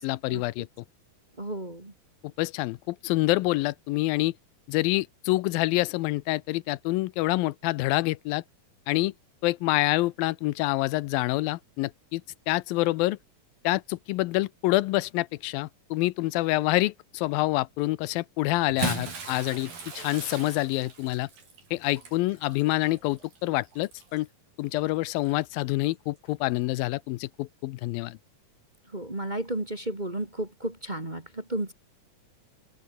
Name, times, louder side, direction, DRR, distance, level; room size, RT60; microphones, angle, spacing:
voice 1, 0.0-0.7 2.4-4.3 4.7-8.4 8.9-9.1 9.4-12.2 12.5-13.2 13.6-21.3 21.7-24.3 24.6-28.2, left 19 dB, 85° left, 2.5 m, -27 dB
voice 2, 1.4-1.9 28.9-31.7, right 1 dB, 15° right, 1.7 m, -33 dB
Bathtub (filling or washing) / Splash splatter, 18.6-24.3 25.2-25.3 26.8-26.9, right 4 dB, 65° right, 7.9 m, -38 dB
open air
omnidirectional pair, 4.2 m